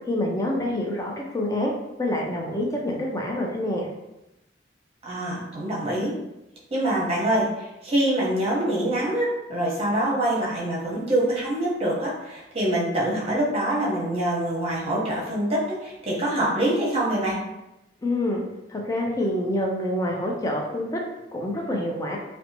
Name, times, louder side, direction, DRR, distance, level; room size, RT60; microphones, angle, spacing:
voice 1, 0.1-1.7 2.0-3.9 18.0-18.4 18.7-21.0 21.3-22.2, left 1 dB, 20° left, -1 dB, 0.4 m, -26 dB
voice 2, 5.0-6.1 6.7-7.5 7.8-17.4, right 1 dB, 35° right, -5 dB, 0.8 m, -25 dB
2.7 x 2.2 x 2.7 m, 0.95 s
head